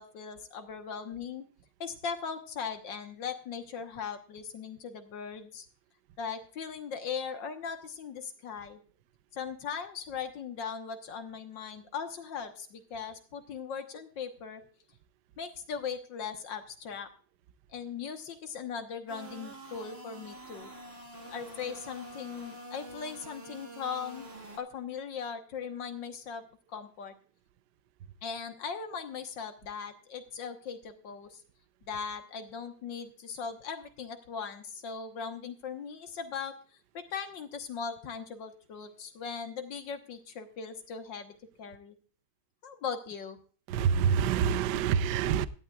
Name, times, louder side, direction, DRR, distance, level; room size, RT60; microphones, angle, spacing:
voice 1, 0.0-1.4 1.8-5.7 6.2-8.8 9.3-14.6 15.4-17.1 17.7-20.7 21.3-24.3 24.6-27.1 28.2-31.4 31.8-36.6 36.9-42.0 42.6-43.4, left 6 dB, 65° left, 8 dB, 1.8 m, -39 dB
sound 1, 19.1-24.6, right 1 dB, 30° right, 1.9 m, -46 dB
voice 2, 43.7-45.5, right 7 dB, 70° right, 15 dB, 1.1 m, -26 dB
17.0 x 11.5 x 2.4 m, 0.40 s
omnidirectional pair, 2.3 m